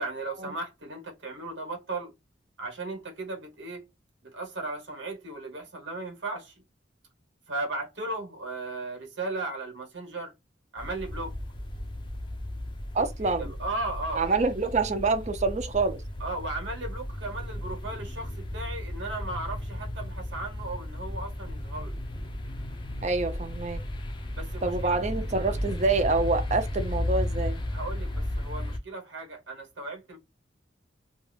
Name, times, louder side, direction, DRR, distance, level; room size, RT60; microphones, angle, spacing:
voice 1, 0.0-2.1 2.6-3.8 4.2-6.6 7.5-10.3 10.7-11.4 13.0-14.2 16.2-22.0 24.3-24.9 27.7-30.2, right 2 dB, 80° right, 1.1 m, -36 dB
sound 1, 10.8-28.8, left 1 dB, 25° left, 0.4 m, -34 dB
voice 2, 12.9-13.5 14.1-16.0 23.0-23.8 24.6-27.6, right 3 dB, 35° right, 0.5 m, -26 dB
2.4 x 2.2 x 3.2 m
head